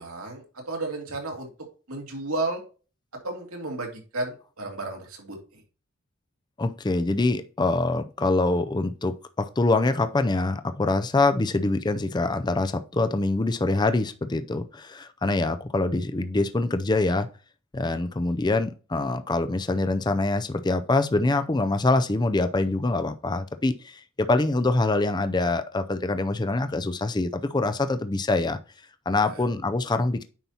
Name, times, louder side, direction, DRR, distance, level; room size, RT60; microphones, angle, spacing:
voice 1, 0.0-1.5 1.9-2.6 3.2-5.6 29.2-29.4, right 2 dB, 85° right, 2.5 m, -33 dB
voice 2, 6.6-17.3 17.7-28.6 29.1-30.2, left 2 dB, 20° left, 0.4 m, -25 dB
9.2 x 5.7 x 2.9 m
head